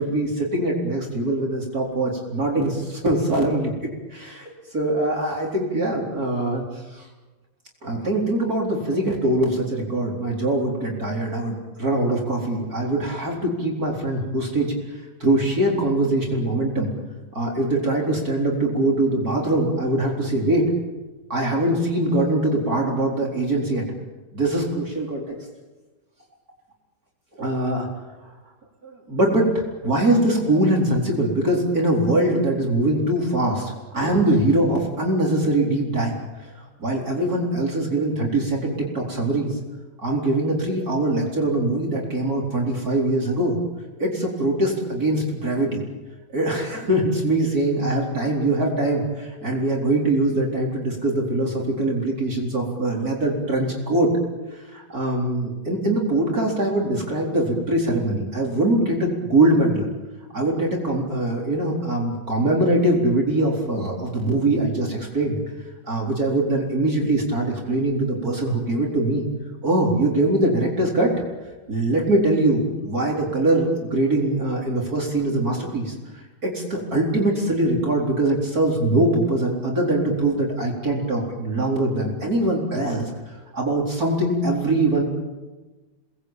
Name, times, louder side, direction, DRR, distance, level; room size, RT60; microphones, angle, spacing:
voice 1, 0.0-3.7 4.1-7.1 7.8-14.7 15.2-16.9 17.3-20.7 21.3-23.8 24.3-25.4 27.4-27.9 28.8-39.6 40.0-43.6 44.0-45.8 46.3-54.1 54.5-59.9 60.3-65.4 65.9-69.2 69.6-71.1 71.7-83.1 83.5-85.0, right 1 dB, 50° right, -2 dB, 4.7 m, -22 dB
29.5 x 20.5 x 9.0 m, 1.2 s
omnidirectional pair, 2.1 m